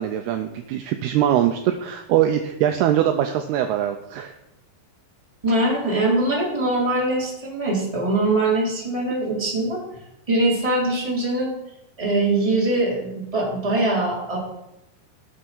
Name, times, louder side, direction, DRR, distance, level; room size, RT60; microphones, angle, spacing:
voice 1, 0.0-4.3, right 11 dB, 85° right, 6 dB, 2.3 m, -22 dB
voice 2, 5.4-9.8 10.3-11.5 12.0-14.4, right 2 dB, 10° right, -4 dB, 2.9 m, -22 dB
17.5 x 6.6 x 6.2 m, 0.88 s
omnidirectional pair, 5.4 m